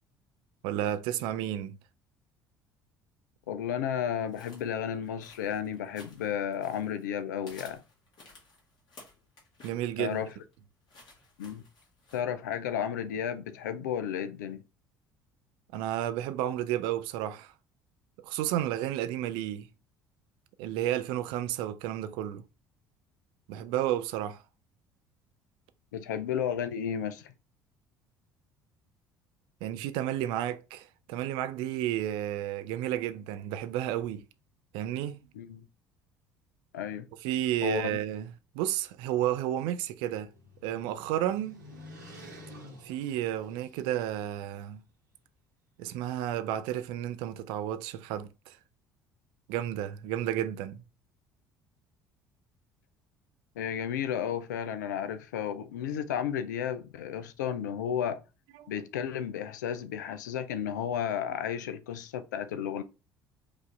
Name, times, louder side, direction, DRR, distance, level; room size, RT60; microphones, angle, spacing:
voice 1, 0.6-1.8 9.6-10.2 15.7-17.5 18.2-19.7 20.6-22.4 23.5-24.4 29.6-34.2 34.7-35.2 37.2-40.3 40.6-41.6 42.8-44.8 45.8-48.6 49.5-50.8 58.6-58.7, right 12 dB, 55° right, 0.4 m, -32 dB
voice 2, 3.5-7.8 10.0-10.3 11.4-11.6 12.1-14.6 25.9-27.3 35.3-35.6 36.7-37.0 37.6-38.0 53.6-58.2 58.7-62.8, left 9 dB, 70° left, 0.4 m, -33 dB
sound 1, 4.3-7.1 7.4-12.2, left 3 dB, 45° left, 1.9 m, -55 dB
sound 2, 39.6-44.1, left 1 dB, 80° right, 1.2 m, -50 dB
4.9 x 2.6 x 3.2 m
figure-of-eight pair, 55°, 10 cm